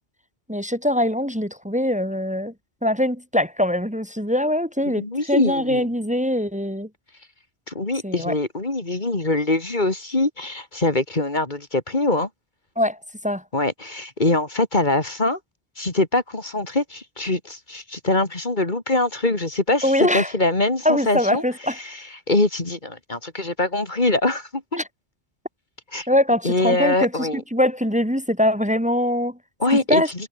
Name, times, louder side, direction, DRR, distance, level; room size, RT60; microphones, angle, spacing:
voice 1, 0.5-2.5 2.8-6.9 8.0-8.3 12.8-13.0 13.2-13.4 19.8-20.3 20.8-21.7 26.1-29.4 29.9-30.1, left 1 dB, 5° right, 2.7 m, -22 dB
voice 2, 4.9-5.9 7.7-12.3 13.5-15.4 15.8-21.4 21.7-24.8 25.9-26.1 26.4-27.4 29.6-30.0, left 2 dB, 45° left, 2.8 m, -23 dB
omnidirectional pair, 1.1 m